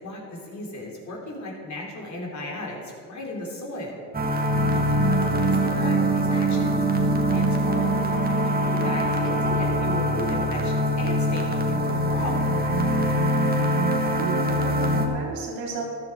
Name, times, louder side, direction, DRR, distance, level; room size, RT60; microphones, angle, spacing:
voice 1, 0.0-4.0 4.7-6.8 7.3-12.4, left 2 dB, 45° left, -1 dB, 3.7 m, -35 dB
sound 1, 4.1-15.1, right 1 dB, 25° right, 1.8 m, -23 dB
voice 2, 5.0-5.4 14.1-15.8, right 4 dB, 75° right, -2 dB, 3.1 m, -34 dB
14.0 x 10.5 x 4.7 m, 2.4 s
supercardioid pair, 80°, 39 cm